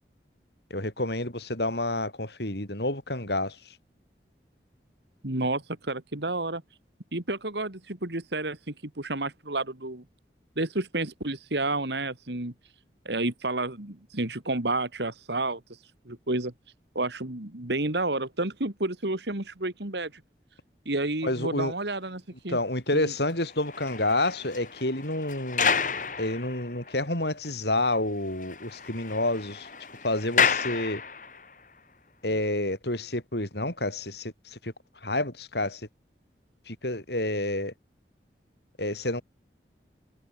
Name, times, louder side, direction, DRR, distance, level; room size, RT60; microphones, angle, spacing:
voice 1, 0.7-3.6 21.2-21.7 22.5-25.8 26.2-29.7 30.0-31.0 32.2-34.7 35.0-35.8 36.7-37.7 38.8-39.2, left 1 dB, 70° left, 7.4 m, -29 dB
voice 2, 5.2-6.6 7.1-10.0 10.6-12.5 13.0-15.6 16.1-16.5 16.9-20.1 20.9-22.6 22.9-23.1, right 2 dB, 75° right, 2.7 m, -30 dB
sound 1, 23.4-27.1 27.4-27.5 27.9-28.0 28.3-31.5 32.2-32.4, left 6 dB, 45° left, 6.7 m, -31 dB
head